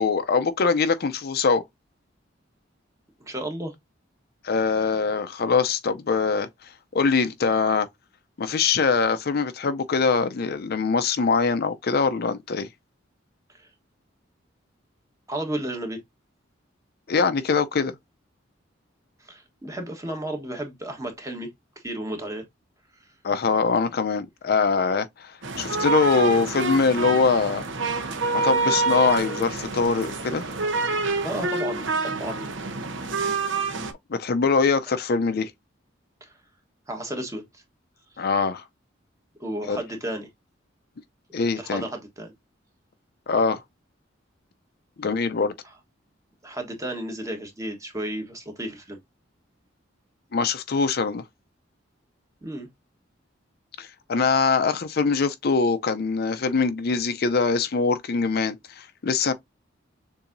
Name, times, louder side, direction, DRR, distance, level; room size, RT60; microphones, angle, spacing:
voice 1, 0.0-1.6 4.4-6.5 6.9-7.9 8.4-12.7 17.1-17.9 23.2-27.6 28.3-30.5 34.1-35.5 38.2-38.6 39.7-39.8 41.3-41.8 43.3-43.6 45.0-45.5 50.3-51.2 53.8-59.3, left 4 dB, 55° left, 0.5 m, -23 dB
voice 2, 3.3-3.7 13.6-13.7 15.3-16.0 19.3-21.5 21.8-22.4 31.2-32.4 36.2-36.3 36.9-37.6 39.4-40.3 41.6-42.3 46.4-49.0 52.4-52.7, right 1 dB, 15° right, 1.2 m, -33 dB
sound 1, 25.4-33.9, right 3 dB, 70° right, 0.8 m, -27 dB
6.9 x 2.7 x 2.6 m
head